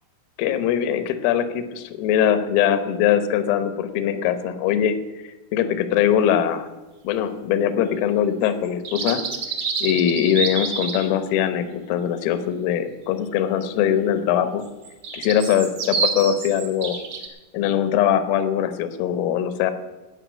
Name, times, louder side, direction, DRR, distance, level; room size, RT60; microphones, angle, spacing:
voice 1, 0.4-5.0 5.5-6.7 7.1-9.2 9.8-14.6 15.1-17.0 17.5-19.7, left 9 dB, 90° left, 11 dB, 3.7 m, -21 dB
sound 1, 8.6-11.1 14.6-17.3, right 5 dB, 70° right, 1.4 m, -27 dB
16.5 x 6.4 x 9.3 m, 1.1 s
omnidirectional pair, 5.8 m